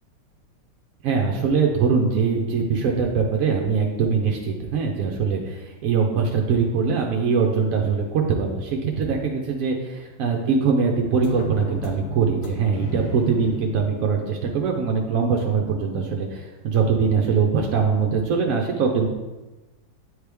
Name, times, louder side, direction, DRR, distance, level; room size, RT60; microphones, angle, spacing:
voice 1, 1.0-19.1, right 5 dB, 70° right, 1 dB, 0.8 m, -22 dB
sound 1, 11.1-14.8, equal, 85° left, 0.7 m, -34 dB
9.6 x 3.2 x 3.4 m, 1.1 s
omnidirectional pair, 2.0 m